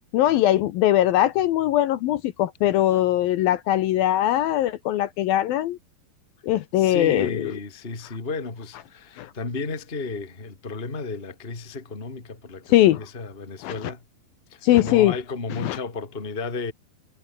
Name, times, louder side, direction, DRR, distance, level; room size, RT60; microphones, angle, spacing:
voice 1, 0.1-5.8 6.4-7.5 9.2-9.3 12.7-13.0 13.6-13.9 14.6-15.2 15.5-15.8, left 13 dB, 70° left, 2.5 m, -21 dB
voice 2, 6.8-14.0 14.5-16.7, left 3 dB, 15° left, 2.7 m, -33 dB
omnidirectional pair, 4.8 m